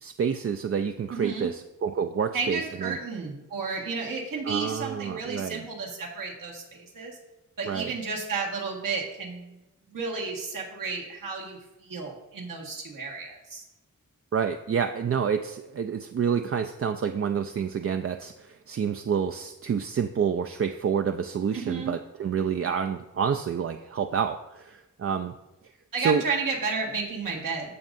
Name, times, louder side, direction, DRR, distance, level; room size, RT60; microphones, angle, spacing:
voice 1, 0.0-3.0 4.5-5.6 7.6-7.9 14.3-25.3 26.0-26.2, right 7 dB, 45° right, 7 dB, 0.4 m, -28 dB
voice 2, 1.1-1.5 2.3-7.2 7.6-9.5 9.9-13.6 21.5-22.0 25.9-27.8, right 4 dB, 80° right, -2 dB, 1.7 m, -32 dB
14.5 x 5.3 x 2.6 m, 1.0 s
cardioid pair, 70°, 33 cm